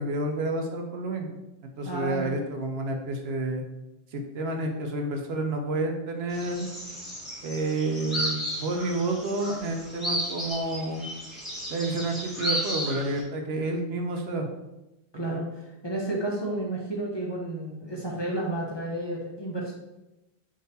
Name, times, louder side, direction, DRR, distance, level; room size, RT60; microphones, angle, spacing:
voice 1, 0.0-3.6 4.1-6.7 7.4-11.1 11.7-14.5 15.3-15.4, right 2 dB, 80° right, 3 dB, 0.9 m, -30 dB
voice 2, 1.8-2.3 15.1-19.7, right 2 dB, 35° left, -3 dB, 0.5 m, -31 dB
sound 1, 6.3-13.2, equal, ahead, 1.1 m, -34 dB
3.9 x 2.5 x 3.9 m, 0.96 s
omnidirectional pair, 1.0 m